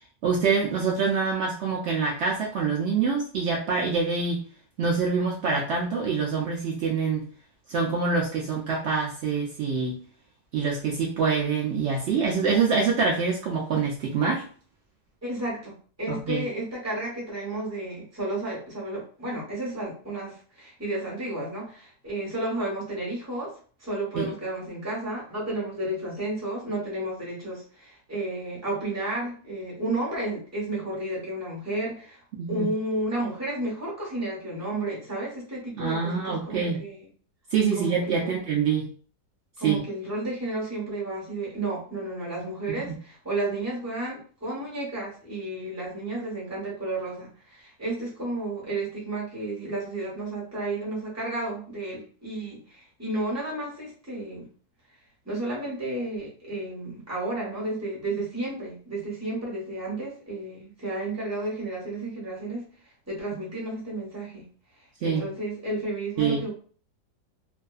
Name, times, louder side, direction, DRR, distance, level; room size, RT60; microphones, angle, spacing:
voice 1, 0.2-4.4 4.8-7.3 7.7-10.0 10.5-14.5 16.1-16.4 24.1-24.3 32.3-32.7 35.8-36.8 37.5-38.9 39.6-39.8 42.8-42.9 65.0-65.3 66.2-66.4, right 5 dB, 85° right, -2 dB, 0.6 m, -25 dB
voice 2, 15.2-15.7 16.0-23.5 23.8-32.2 32.5-37.1 37.7-38.5 39.6-54.5 55.2-62.6 63.1-64.5 65.0-66.5, right 2 dB, 15° right, -5 dB, 0.8 m, -32 dB
2.6 x 2.3 x 2.3 m, 0.43 s
omnidirectional pair, 1.7 m